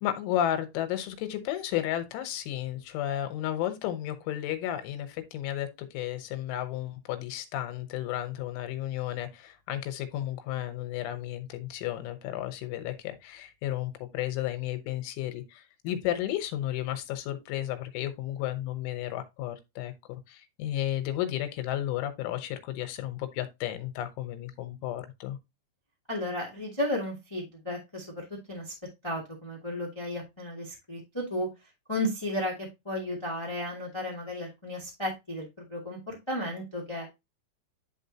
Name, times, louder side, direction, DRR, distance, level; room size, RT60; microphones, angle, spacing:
voice 1, 0.0-25.4, left 12 dB, 85° left, 3.4 m, -33 dB
voice 2, 26.1-28.7 29.0-31.5 31.9-37.1, left 1 dB, 35° left, 0.4 m, -34 dB
11.0 x 3.8 x 2.8 m
omnidirectional pair, 5.4 m